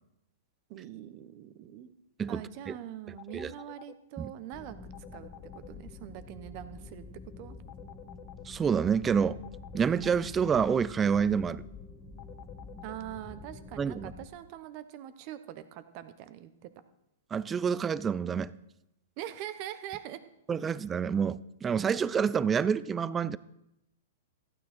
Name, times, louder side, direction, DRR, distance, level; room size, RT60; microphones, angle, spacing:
voice 1, 0.7-1.9 2.3-7.0 7.4-7.6 12.8-16.7 19.2-20.2, right 12 dB, 45° right, 12 dB, 1.0 m, -43 dB
voice 2, 2.2-2.7 3.3-3.5 4.2-4.3 8.5-9.4 9.7-11.6 13.8-14.1 17.3-18.5 20.5-23.4, right 6 dB, 20° right, 19 dB, 0.4 m, -28 dB
sound 1, 3.2-3.9 4.9-5.7 7.7-8.4 9.4-10.2 12.2-12.9, left 15 dB, 45° left, 0.8 m, -49 dB
sound 2, 4.5-14.3, left 3 dB, 15° left, 1.2 m, -47 dB
14.5 x 9.3 x 4.5 m, 0.85 s
hypercardioid pair, 115°, 0 cm